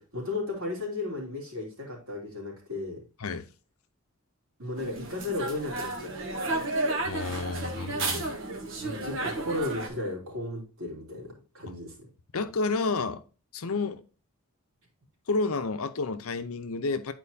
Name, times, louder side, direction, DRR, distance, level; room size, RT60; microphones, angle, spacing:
voice 1, 0.0-3.0 4.6-6.6 8.8-12.1, left 2 dB, 75° right, 3.0 m, -35 dB
sound 1, 4.8-9.9, right 2 dB, 55° right, 1.2 m, -32 dB
voice 2, 7.0-8.3 11.7-11.8 12.3-13.2 13.5-14.0 15.3-17.1, left 3 dB, 75° left, 0.7 m, -30 dB
10.5 x 4.5 x 2.7 m
head